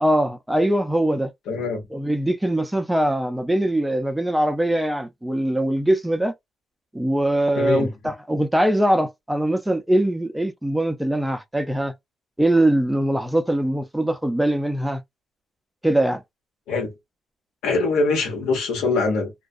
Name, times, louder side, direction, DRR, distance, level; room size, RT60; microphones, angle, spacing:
voice 1, 0.0-1.3 1.9-6.3 6.9-11.9 12.4-15.0 15.8-16.2, right 1 dB, 5° right, 0.4 m, -22 dB
voice 2, 1.5-1.8 7.5-7.9 16.7-17.0 17.6-19.3, left 3 dB, 90° left, 1.1 m, -23 dB
2.3 x 2.2 x 2.5 m
cardioid pair, 90°, 0 cm